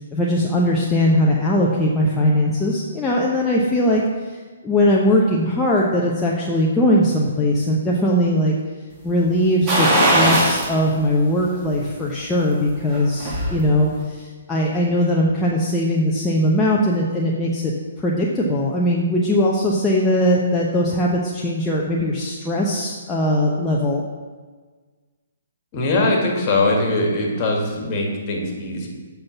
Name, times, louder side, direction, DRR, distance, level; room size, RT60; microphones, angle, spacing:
voice 1, 0.1-4.0 4.3-4.4 4.6-8.5 9.0-17.7 18.0-24.0, left 1 dB, 10° left, -4 dB, 0.9 m, -20 dB
sound 1, 9.7-10.7 11.2-11.3 12.8-13.6 13.9-14.0, right 1 dB, 25° right, 2.5 m, -18 dB
voice 2, 25.7-28.9, left 2 dB, 35° left, 0 dB, 2.0 m, -21 dB
7.7 x 5.7 x 6.0 m, 1.4 s
figure-of-eight pair, 125°, 0 cm